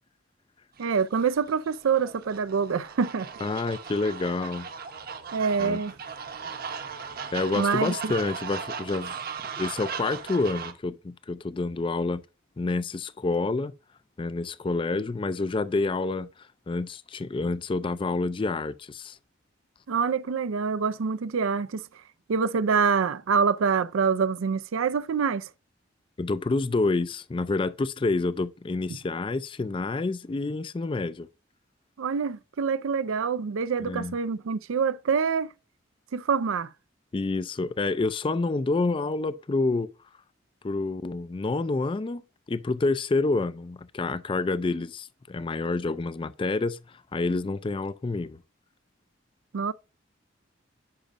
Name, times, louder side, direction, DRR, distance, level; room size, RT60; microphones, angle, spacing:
sound 1, 0.8-10.7, right 6 dB, 45° right, 0.9 m, -37 dB
voice 1, 0.8-3.3 5.3-5.9 7.6-8.1 19.9-21.8 22.3-25.5 32.0-35.5 36.1-36.7 49.5-49.7, right 5 dB, 85° right, 0.5 m, -26 dB
voice 2, 3.4-4.7 5.6-5.8 7.3-9.2 9.6-12.2 12.6-13.7 14.2-16.3 16.7-19.2 26.2-31.3 33.8-34.2 37.1-39.9 40.6-42.2 42.5-48.4, left 3 dB, 25° left, 0.3 m, -28 dB
10.5 x 5.1 x 2.5 m
head